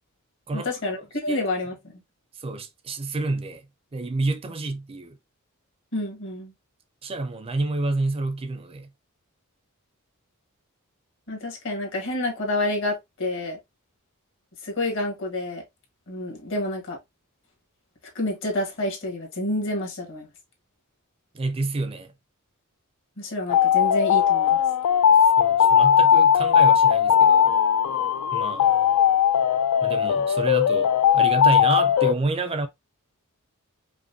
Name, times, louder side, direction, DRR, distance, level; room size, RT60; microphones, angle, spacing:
voice 1, 0.5-1.9 5.9-6.5 11.3-13.6 14.6-15.6 16.1-17.0 18.1-20.3 23.2-24.6, left 1 dB, 60° left, 1.4 m, -28 dB
voice 2, 2.3-3.7 3.9-5.2 7.0-8.9 21.3-22.1 25.4-27.5 28.3-28.7 29.8-32.7, right 2 dB, 25° right, 0.4 m, -29 dB
sound 1, 23.5-32.1, left 8 dB, 90° left, 0.3 m, -18 dB
5.0 x 2.1 x 2.6 m
head